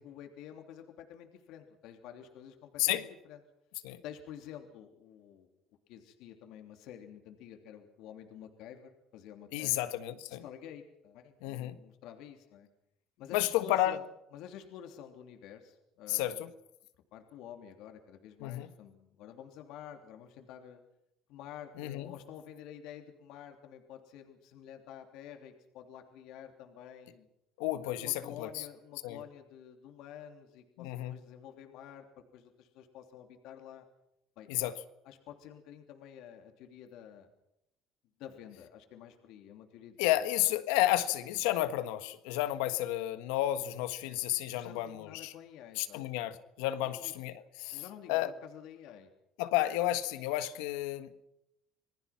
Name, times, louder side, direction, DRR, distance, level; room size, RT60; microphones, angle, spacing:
voice 1, 0.0-3.4 4.0-5.5 5.9-9.9 10.3-12.7 13.2-14.0 14.3-16.4 17.1-20.8 21.3-27.3 27.8-32.0 32.3-33.8 34.4-34.7 35.0-37.3 38.2-40.0 44.5-46.0 46.8-47.1 47.7-49.1, left 9 dB, 70° left, 5 dB, 3.2 m, -50 dB
voice 2, 9.5-10.4 11.4-11.7 13.3-14.0 16.1-16.5 18.4-18.7 21.8-22.1 27.6-28.5 29.0-29.2 30.8-31.1 34.5-34.8 40.0-45.3 45.8-47.8 48.1-48.3 49.4-51.1, left 14 dB, 90° left, 11 dB, 1.5 m, -31 dB
27.5 x 20.0 x 6.0 m, 0.82 s
cardioid pair, 115°, 0 cm